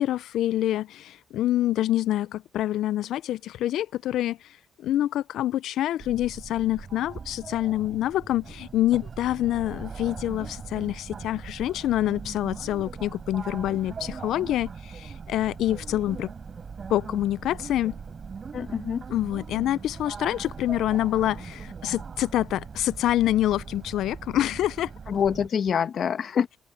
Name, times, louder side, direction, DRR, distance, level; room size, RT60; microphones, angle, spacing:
voice 1, 0.0-4.4 4.8-16.3 16.9-17.9 19.1-24.9, left 13 dB, 80° left, 0.4 m, -26 dB
sound 1, 6.0-25.5, right 5 dB, 40° right, 4.9 m, -40 dB
voice 2, 18.5-19.0 25.1-26.6, left 7 dB, 55° left, 1.2 m, -26 dB
open air
cardioid pair, 90°, 0 cm